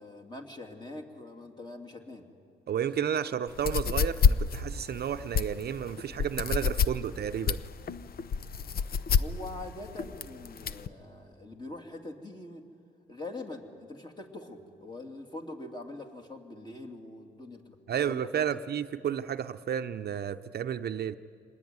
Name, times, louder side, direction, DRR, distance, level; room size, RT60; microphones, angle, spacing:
voice 1, 0.0-2.3 8.4-8.5 8.8-12.6 13.1-17.8 18.0-18.6, left 2 dB, 20° left, 3 dB, 3.0 m, -43 dB
voice 2, 2.7-7.6 17.9-21.2, right 9 dB, 55° right, 9 dB, 0.8 m, -32 dB
sound 1, 3.5-10.9, left 6 dB, 50° left, 0.8 m, -27 dB
25.5 x 20.0 x 9.6 m, 2.3 s
cardioid pair, 90°, 20 cm